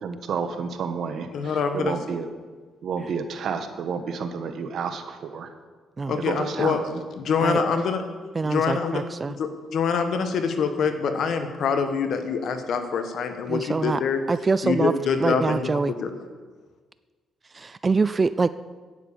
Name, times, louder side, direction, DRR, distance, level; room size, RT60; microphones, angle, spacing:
voice 1, 0.0-2.3 2.8-5.5 6.2-7.0, right 6 dB, 65° right, 8 dB, 1.3 m, -30 dB
voice 2, 1.3-1.9 6.1-6.8 7.1-8.0 8.4-9.0 9.4-14.2 14.6-16.1, left 6 dB, 65° left, 8 dB, 1.4 m, -25 dB
voice 3, 8.4-9.4 13.5-14.0 14.3-14.9 15.2-15.9 17.5-18.5, right 4 dB, 30° right, 15 dB, 0.4 m, -24 dB
10.0 x 9.5 x 7.0 m, 1.4 s
cardioid pair, 90°, 0 cm